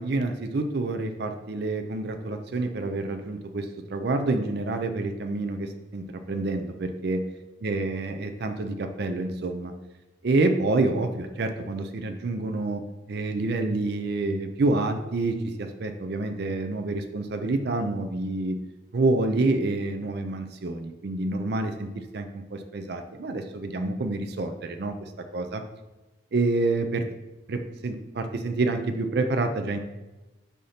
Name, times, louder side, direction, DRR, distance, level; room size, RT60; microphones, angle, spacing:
voice 1, 0.0-7.2 7.6-9.7 10.2-12.8 13.1-18.6 18.9-25.6 26.3-27.0 27.5-29.8, right 2 dB, 55° right, 6 dB, 0.5 m, -28 dB
8.2 x 2.8 x 5.6 m, 1.1 s
head